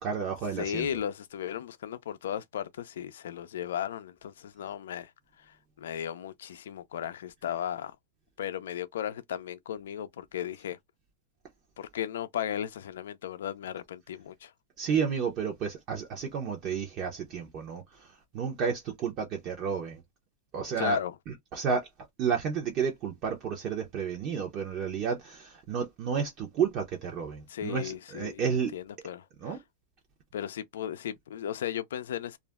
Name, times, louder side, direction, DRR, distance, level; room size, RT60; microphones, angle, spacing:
voice 1, 0.0-0.9 14.8-20.0 20.5-21.0 21.5-21.9 22.2-28.7 29.4-29.6, right 6 dB, 35° right, 0.8 m, -31 dB
voice 2, 0.5-5.1 5.4-8.0 8.4-10.8 11.8-14.5 20.8-21.2 27.5-29.6 30.3-32.4, left 10 dB, 80° left, 0.4 m, -36 dB
2.5 x 2.0 x 3.5 m
supercardioid pair, 145°, 0 cm